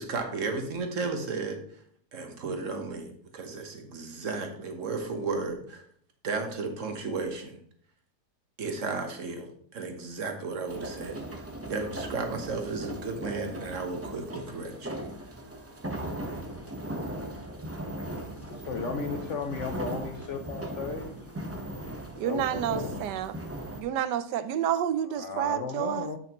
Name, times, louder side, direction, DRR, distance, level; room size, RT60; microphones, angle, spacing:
voice 1, 0.0-1.6 2.1-5.8 6.2-7.6 8.6-11.2 11.6-15.0, right 4 dB, 50° right, 5 dB, 1.4 m, -34 dB
sound 1, 10.7-23.8, right 1 dB, 15° right, 0.5 m, -38 dB
voice 2, 18.5-21.1 22.1-23.0 25.0-26.2, left 5 dB, 65° left, 6 dB, 0.8 m, -35 dB
voice 3, 22.2-23.3 23.8-26.1, right 10 dB, 80° right, 13 dB, 1.2 m, -29 dB
8.2 x 6.8 x 3.0 m, 0.62 s
omnidirectional pair, 1.8 m